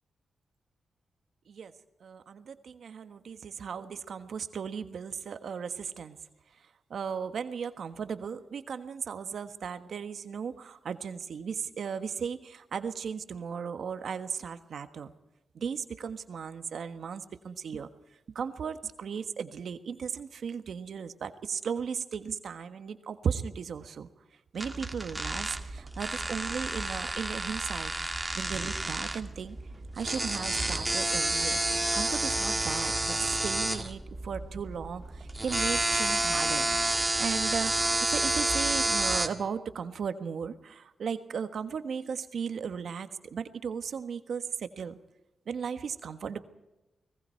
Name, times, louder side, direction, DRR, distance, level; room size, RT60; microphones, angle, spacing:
voice 1, 2.0-6.2 6.9-15.1 15.5-17.9 18.3-24.1 24.5-27.9 28.3-29.6 29.9-31.6 31.9-36.7 37.2-45.0 45.5-46.4, right 6 dB, 75° right, 9 dB, 1.5 m, -36 dB
sound 1, 24.6-39.3, right 2 dB, 15° right, 2.2 m, -30 dB
30.0 x 20.0 x 4.6 m, 0.99 s
cardioid pair, 75°, 0 cm